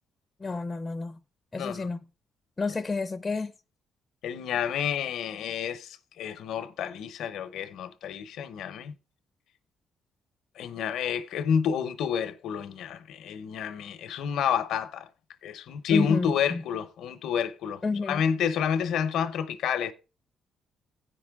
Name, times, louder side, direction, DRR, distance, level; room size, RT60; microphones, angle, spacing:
voice 1, 0.4-1.2 1.5-2.0 2.6-3.5 15.9-16.6 17.8-18.2, left 4 dB, 25° left, 0.6 m, -30 dB
voice 2, 1.6-1.9 4.2-8.9 10.6-15.1 15.4-19.9, left 7 dB, 80° left, 0.7 m, -29 dB
16.0 x 5.4 x 3.5 m
cardioid pair, 90°, 0 cm